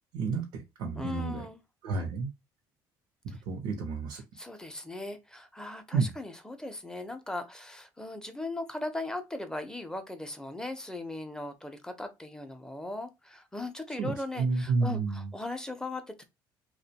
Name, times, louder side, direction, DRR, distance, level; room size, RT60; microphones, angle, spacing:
voice 1, 0.1-1.5 1.8-2.3 3.5-4.2 5.9-6.1 14.0-15.3, right 4 dB, 85° right, 0.6 m, -30 dB
voice 2, 1.0-1.6 4.3-16.3, left 2 dB, 10° left, 0.5 m, -38 dB
2.5 x 2.1 x 2.7 m
cardioid pair, 110°, 9 cm